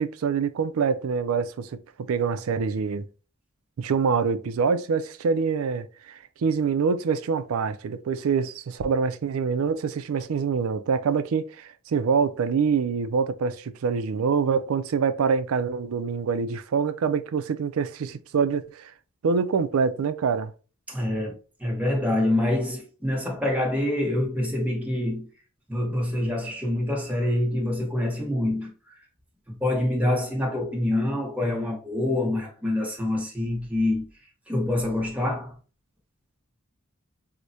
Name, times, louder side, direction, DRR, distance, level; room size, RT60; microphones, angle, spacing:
voice 1, 0.0-3.1 3.8-18.9 19.2-20.5, right 5 dB, 75° right, 0.4 m, -25 dB
voice 2, 20.9-25.3 25.7-28.7 29.5-34.1 34.5-35.5, left 1 dB, 5° right, 1.0 m, -26 dB
4.7 x 2.1 x 2.7 m
head